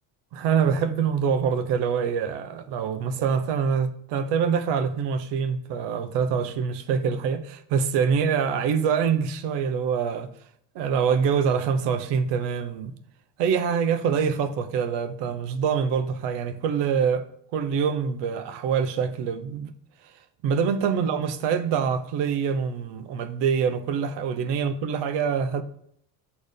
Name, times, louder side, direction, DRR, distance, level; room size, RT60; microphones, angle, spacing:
voice 1, 0.3-10.3 10.7-12.9 13.4-17.2 17.5-19.7 20.4-25.6, right 6 dB, 75° right, 0.9 m, -25 dB
6.9 x 4.3 x 5.1 m
cardioid pair, 160°, 43 cm